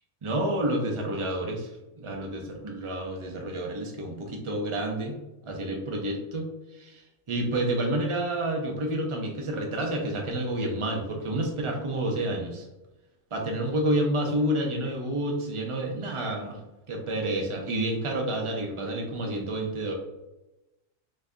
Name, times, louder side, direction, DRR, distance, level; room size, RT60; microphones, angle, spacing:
voice 1, 0.2-1.7 2.0-5.2 5.4-7.0 7.3-12.7 13.3-16.6 16.9-19.9, right 1 dB, 35° right, 1 dB, 0.6 m, -29 dB
4.2 x 2.6 x 3.5 m, 0.98 s
omnidirectional pair, 1.3 m